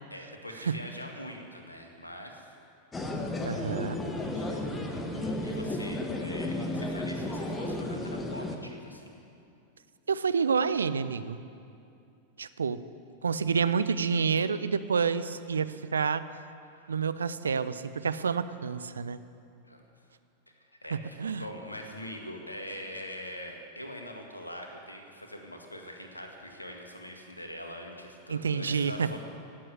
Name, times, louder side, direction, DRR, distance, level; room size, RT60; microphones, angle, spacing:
voice 1, 0.1-2.6 4.3-9.1 16.7-17.0 19.6-19.8 20.6-29.2, left 1 dB, 85° left, 3 dB, 1.8 m, -43 dB
sound 1, 2.9-8.6, left 1 dB, 15° left, 1.6 m, -33 dB
voice 2, 3.4-4.0 10.1-11.4 12.4-12.8 13.2-16.2 16.9-19.2 20.9-21.4 28.3-29.1, right 6 dB, 70° right, 13 dB, 0.5 m, -28 dB
17.0 x 7.7 x 9.3 m, 2.6 s
figure-of-eight pair, 90°, 0 cm